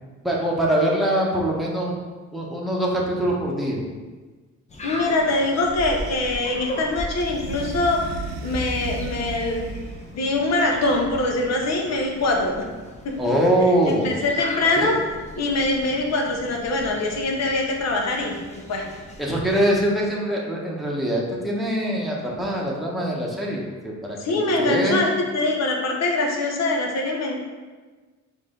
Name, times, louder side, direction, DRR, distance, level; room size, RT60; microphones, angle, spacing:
voice 1, 0.2-2.0 2.3-3.8 13.2-14.1 14.8-15.0 19.2-24.2 24.6-25.0, right 1 dB, ahead, -4 dB, 1.0 m, -23 dB
sound 1, 4.7-19.7, equal, 25° left, 0.7 m, -39 dB
voice 2, 4.8-8.1 8.4-9.8 10.1-12.7 13.0-13.1 13.9-15.0 15.4-18.3 18.7-18.9 24.2-27.4, left 2 dB, 60° left, 1 dB, 0.9 m, -23 dB
sound 2, 7.2-10.2 10.7-11.7, right 3 dB, 60° right, 0.4 m, -34 dB
4.8 x 2.7 x 3.7 m, 1.3 s
cardioid pair, 90°, 30 cm